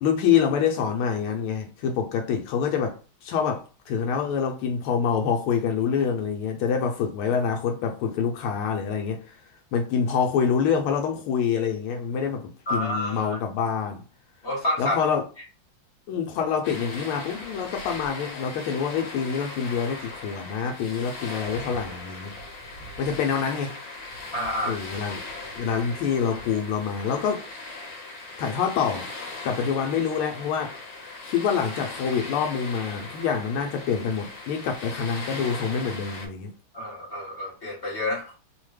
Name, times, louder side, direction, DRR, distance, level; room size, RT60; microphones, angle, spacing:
voice 1, 0.0-9.4 9.7-14.0 14.8-15.2 16.1-22.3 23.0-23.8 24.6-25.2 25.6-27.5 28.4-29.1 29.4-30.8 31.2-36.5, left 7 dB, 85° left, 1.4 m, -26 dB
voice 2, 12.7-13.4 14.4-15.0 24.3-24.8 36.7-38.3, left 1 dB, 40° left, 0.9 m, -29 dB
sound 1, 16.6-36.3, left 3 dB, 70° left, 1.5 m, -39 dB
3.5 x 2.1 x 3.1 m
omnidirectional pair, 2.3 m